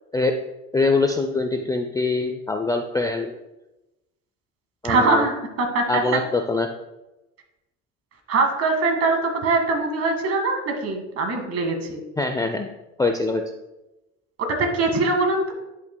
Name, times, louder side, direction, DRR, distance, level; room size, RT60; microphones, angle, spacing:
voice 1, 0.7-3.4 4.8-5.3 5.9-6.7 12.2-12.7 13.0-13.4, left 3 dB, 10° left, 5 dB, 0.4 m, -23 dB
voice 2, 4.8-6.0 8.3-12.0 14.4-15.5, right 3 dB, 45° right, 4 dB, 1.9 m, -22 dB
10.5 x 5.7 x 2.2 m, 0.98 s
supercardioid pair, 100°, 34 cm